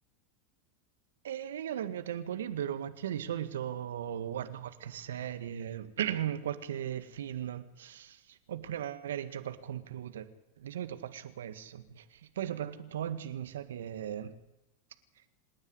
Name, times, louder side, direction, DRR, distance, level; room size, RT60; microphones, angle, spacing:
voice 1, 1.2-10.3 10.6-12.0 12.4-14.3, right 10 dB, 75° right, 1.7 m, -37 dB
27.0 x 9.9 x 9.7 m
hypercardioid pair, 95°, 0 cm